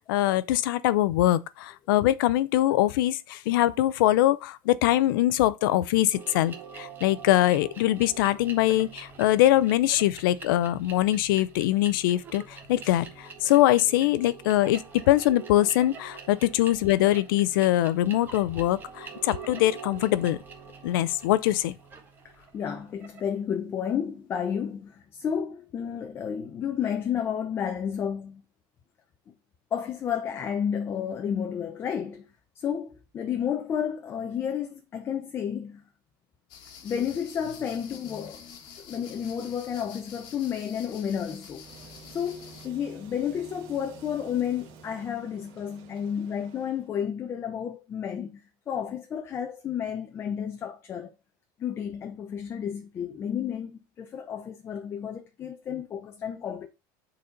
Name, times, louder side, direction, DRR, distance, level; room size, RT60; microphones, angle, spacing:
voice 1, 0.0-20.4 20.8-21.7, left 14 dB, 85° left, 0.6 m, -23 dB
sound 1, 6.1-23.3, right 6 dB, 20° right, 1.1 m, -45 dB
voice 2, 22.4-28.4 29.7-32.3 32.6-35.8 36.8-41.7 42.1-51.1 51.6-56.7, left 8 dB, 20° left, 0.6 m, -31 dB
sound 2, 36.5-42.7, left 7 dB, 40° left, 1.3 m, -48 dB
sound 3, 41.5-46.9, right 4 dB, 55° right, 1.6 m, -50 dB
6.8 x 4.2 x 5.1 m
cardioid pair, 175°, 11 cm